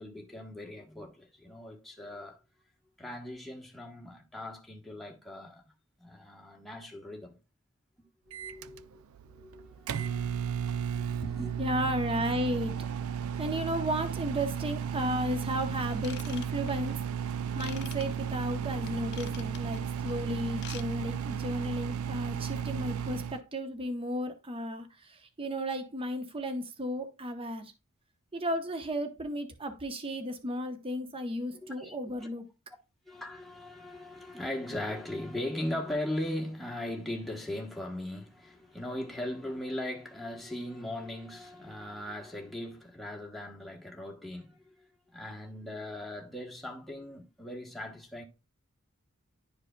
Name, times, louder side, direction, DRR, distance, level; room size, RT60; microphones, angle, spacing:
voice 1, 0.0-2.4 3.0-5.6 6.0-7.4 8.3-11.6 31.5-32.3 33.1-48.2, left 1 dB, ahead, 1.1 m, -39 dB
Microwave oven, 8.3-23.4, right 8 dB, 75° right, 0.4 m, -34 dB
voice 2, 11.6-12.7 13.4-17.0 17.5-27.7 28.3-32.4, equal, 25° right, 0.9 m, -34 dB
Ratchet pawl / Tools, 16.0-16.9 17.6-18.0 18.9-19.8 20.5-20.9 21.1-21.3 21.8-21.9, left 11 dB, 55° left, 0.5 m, -45 dB
11.0 x 4.8 x 2.3 m
head